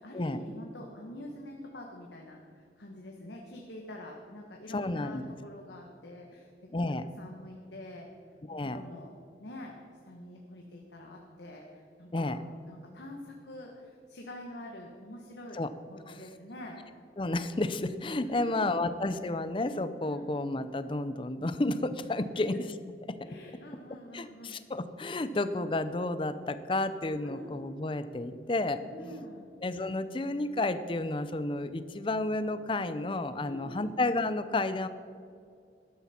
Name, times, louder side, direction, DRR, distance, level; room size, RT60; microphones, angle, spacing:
voice 1, 0.0-2.4 2.8-6.5 7.2-8.1 8.5-9.1 9.4-9.7 10.0-12.4 12.6-15.6 15.9-16.8 18.2-18.8 20.0-20.3 22.3-22.4 23.2-24.6 27.2-27.6 28.9-29.5 33.4-33.8, left 1 dB, 85° left, 0 dB, 1.4 m, -45 dB
voice 2, 4.7-5.2 6.7-7.1 8.5-8.8 12.1-12.4 15.6-15.7 16.1-16.2 17.2-22.6 23.1-23.3 24.1-29.2 29.6-34.9, left 2 dB, 30° left, 12 dB, 0.6 m, -31 dB
13.0 x 12.0 x 4.4 m, 2.4 s
head